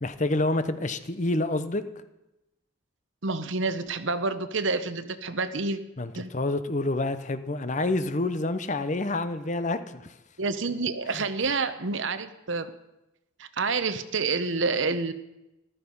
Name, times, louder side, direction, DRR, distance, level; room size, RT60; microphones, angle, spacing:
voice 1, 0.0-1.8 6.0-10.1 11.1-11.2, left 2 dB, 35° left, 11 dB, 0.8 m, -28 dB
voice 2, 3.2-5.8 6.1-6.3 10.4-12.7 13.4-15.1, right 4 dB, 65° right, 12 dB, 0.9 m, -28 dB
14.0 x 12.5 x 5.4 m, 0.94 s
head